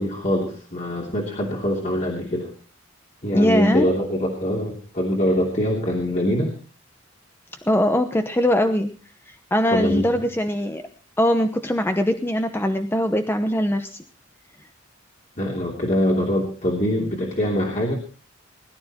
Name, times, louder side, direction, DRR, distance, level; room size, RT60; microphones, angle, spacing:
voice 1, 0.0-2.5 3.2-6.5 9.7-10.2 15.4-17.9, equal, 40° left, -1 dB, 3.1 m, -23 dB
voice 2, 3.3-3.9 7.7-8.9 9.3-10.8 11.2-14.0, equal, 10° left, 7 dB, 0.9 m, -21 dB
20.5 x 12.0 x 4.3 m, 0.38 s
head